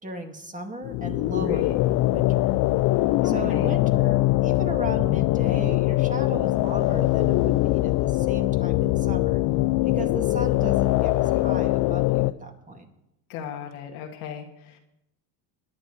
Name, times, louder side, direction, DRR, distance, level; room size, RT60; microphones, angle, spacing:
voice 1, 0.0-1.7 2.1-2.6 3.2-9.4 9.8-12.9, right 2 dB, 15° right, 3 dB, 1.9 m, -36 dB
sound 1, 0.8-12.3, left 18 dB, 45° left, 0.5 m, -22 dB
voice 2, 1.3-1.7 3.2-3.7 13.3-14.8, left 7 dB, 75° left, 2 dB, 1.7 m, -36 dB
22.0 x 10.5 x 3.1 m, 0.87 s
supercardioid pair, 100°, 46 cm